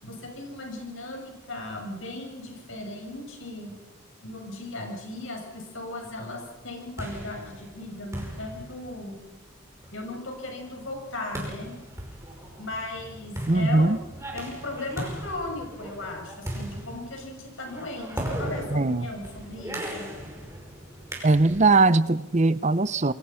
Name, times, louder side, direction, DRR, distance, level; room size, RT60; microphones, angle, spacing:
voice 1, 0.0-3.7 4.2-9.2 9.9-11.7 12.6-13.9 14.3-20.1, left 2 dB, 70° left, 7.2 m, -37 dB
sound 1, 6.6-21.8, right 1 dB, 15° right, 5.4 m, -38 dB
voice 2, 13.5-14.0 18.7-19.1 21.2-23.1, right 3 dB, 35° right, 0.7 m, -20 dB
28.5 x 23.0 x 5.8 m
head